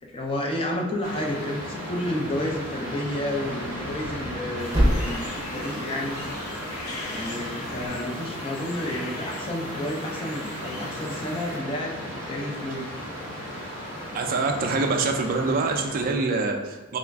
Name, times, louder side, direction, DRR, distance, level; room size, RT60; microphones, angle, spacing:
voice 1, 0.0-6.3 7.1-12.9, left 1 dB, 25° left, 0 dB, 0.5 m, -31 dB
sound 1, 1.0-16.1, equal, 45° left, 1.4 m, -35 dB
Thump thud, 3.8-7.9, equal, 15° right, 0.7 m, -30 dB
sound 2, 4.6-11.6, left 2 dB, 80° left, 0.6 m, -41 dB
voice 2, 14.1-17.0, right 3 dB, 40° right, 3 dB, 0.4 m, -25 dB
3.0 x 2.4 x 3.4 m, 1.2 s
head